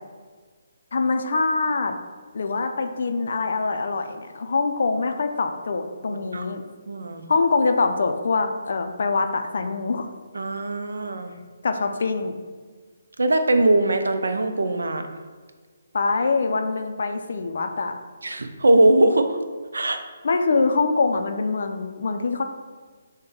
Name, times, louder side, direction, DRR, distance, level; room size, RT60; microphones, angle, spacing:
voice 1, 0.9-1.9 2.3-6.6 7.3-10.1 11.6-12.3 15.9-17.9 20.2-22.4, left 4 dB, 65° left, 6 dB, 0.4 m, -24 dB
voice 2, 6.1-6.5 6.9-7.2 10.3-11.3 13.2-15.1 18.2-19.4 19.7-20.0, right 1 dB, 80° right, 7 dB, 0.4 m, -21 dB
6.2 x 2.1 x 3.1 m, 1.5 s
figure-of-eight pair, 150°, 0 cm